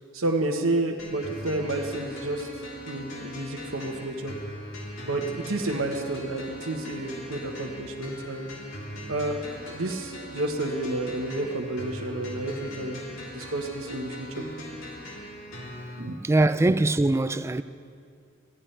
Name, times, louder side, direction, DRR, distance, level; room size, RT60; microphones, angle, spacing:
voice 1, 0.1-2.5 2.9-4.3 5.0-8.5 9.1-14.3 16.0-16.2, right 2 dB, 85° right, 1.2 m, -30 dB
sound 1, 1.0-16.0, equal, 80° left, 3.3 m, -40 dB
voice 2, 16.2-17.6, right 2 dB, 15° right, 0.3 m, -22 dB
24.5 x 16.0 x 3.3 m
head